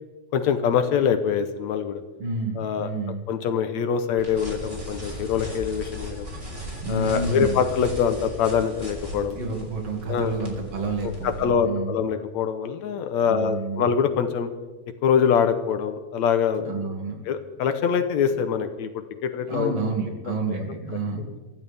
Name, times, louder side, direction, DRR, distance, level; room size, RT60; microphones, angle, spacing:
voice 1, 0.3-2.0 2.6-2.9 3.3-6.3 6.9-9.4 10.1-10.4 11.0-14.5 15.0-16.9 17.3-19.7 20.3-20.6 21.2-21.4, left 7 dB, 75° left, 8 dB, 2.2 m, -24 dB
voice 2, 2.2-3.2 6.8-7.6 9.3-11.9 13.2-13.9 16.6-17.2 19.5-21.3, right 3 dB, 55° right, 1 dB, 3.4 m, -29 dB
sound 1, 4.2-11.4, equal, 15° right, 3.5 m, -37 dB
24.0 x 15.0 x 3.5 m, 1.2 s
omnidirectional pair, 3.3 m